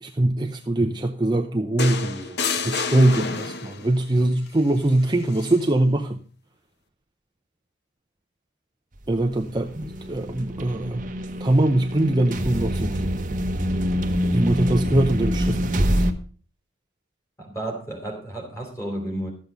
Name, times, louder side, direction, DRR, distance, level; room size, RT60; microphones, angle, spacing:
voice 1, 0.0-2.4 2.6-6.2 9.1-11.1 11.4-13.2 14.3-15.9, right 1 dB, 20° right, 3 dB, 0.7 m, -22 dB
sound 1, 1.8-3.9 5.3-5.5, left 4 dB, 50° left, 0.9 m, -28 dB
sound 2, 9.1-16.1, equal, 40° right, 1.1 m, -25 dB
voice 2, 17.4-19.3, right 1 dB, 15° left, 2 dB, 3.9 m, -32 dB
13.0 x 8.0 x 5.2 m, 0.41 s
head